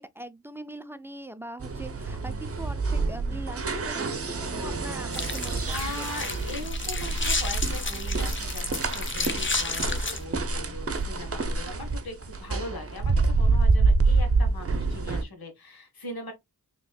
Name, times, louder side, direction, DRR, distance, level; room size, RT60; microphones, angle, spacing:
voice 1, 0.0-6.2, right 1 dB, 5° right, 0.3 m, -42 dB
sound 1, 1.6-15.2, right 3 dB, 40° right, 0.7 m, -27 dB
sound 2, 5.1-10.2, left 3 dB, 35° left, 0.8 m, -32 dB
voice 2, 5.6-16.3, left 1 dB, 85° left, 1.5 m, -40 dB
4.2 x 3.0 x 2.3 m
wide cardioid pair, 55°, 36 cm